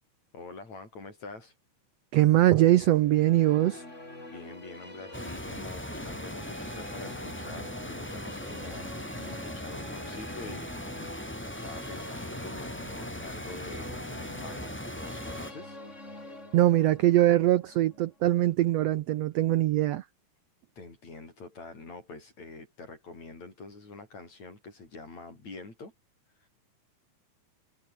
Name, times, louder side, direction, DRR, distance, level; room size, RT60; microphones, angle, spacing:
voice 1, 0.3-1.5 4.3-8.9 9.3-10.7 11.1-15.8 20.8-25.9 26.4-26.5, left 3 dB, 55° left, 8.9 m, -46 dB
voice 2, 2.1-3.8 16.5-20.0, right 14 dB, 80° right, 1.5 m, -22 dB
sound 1, 2.9-19.0, left 1 dB, 20° left, 7.0 m, -46 dB
sound 2, 5.1-15.5, equal, 5° left, 5.0 m, -39 dB
omnidirectional pair, 3.8 m